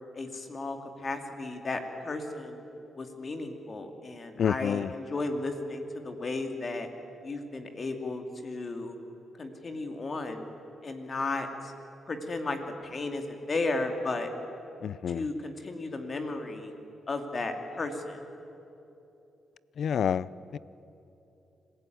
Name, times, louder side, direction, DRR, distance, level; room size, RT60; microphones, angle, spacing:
voice 1, 0.1-2.6 2.9-6.9 7.2-9.0 9.4-10.5 10.8-11.7 12.1-12.6 12.8-14.3 15.1-16.7 17.1-18.2, left 2 dB, 45° left, 5 dB, 2.7 m, -34 dB
voice 2, 4.4-4.9 14.8-15.3 19.8-20.3 20.5-20.6, left 8 dB, 70° left, 20 dB, 0.5 m, -28 dB
25.5 x 16.0 x 9.4 m, 2.9 s
cardioid pair, 70°, 0 cm